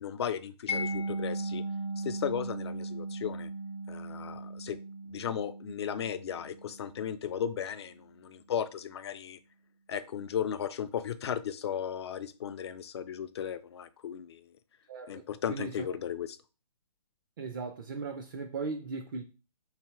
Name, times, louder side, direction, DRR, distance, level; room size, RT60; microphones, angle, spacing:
voice 1, 0.0-1.6 2.0-3.5 3.9-4.8 5.1-9.4 9.9-14.4 15.1-16.4, left 8 dB, 40° left, 0.4 m, -35 dB
Mallet percussion, 0.7-7.5, right 2 dB, 85° left, 0.8 m, -37 dB
voice 2, 14.9-15.9 17.4-19.2, right 4 dB, 35° right, 0.4 m, -38 dB
3.3 x 2.8 x 4.4 m
figure-of-eight pair, 140°, 20 cm